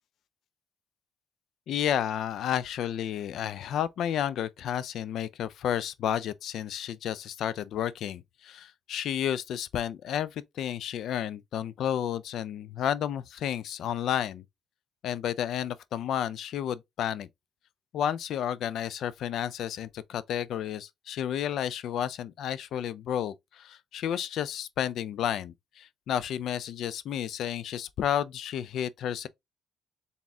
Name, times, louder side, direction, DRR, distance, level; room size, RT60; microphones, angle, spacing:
voice 1, 1.7-14.4 15.0-17.3 17.9-29.3, left 10 dB, 75° left, 0.4 m, -31 dB
4.1 x 3.6 x 2.7 m
cardioid pair, 90°, 0 cm